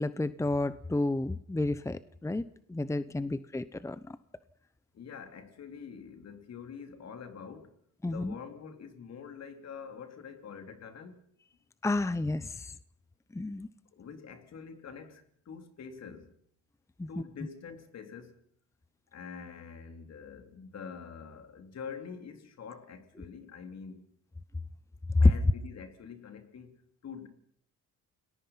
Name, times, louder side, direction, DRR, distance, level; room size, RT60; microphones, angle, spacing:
voice 1, 0.0-2.4 2.7-4.2 8.0-8.4 11.8-12.7 13.3-13.7 17.0-17.1 25.2-25.3, left 2 dB, 10° left, 0.8 m, -29 dB
voice 2, 4.9-7.8 8.1-11.2 13.9-16.3 17.1-18.4 19.1-24.1 25.2-27.3, left 6 dB, 60° left, 3.7 m, -46 dB
29.5 x 19.5 x 5.8 m
cardioid pair, 90°, 30 cm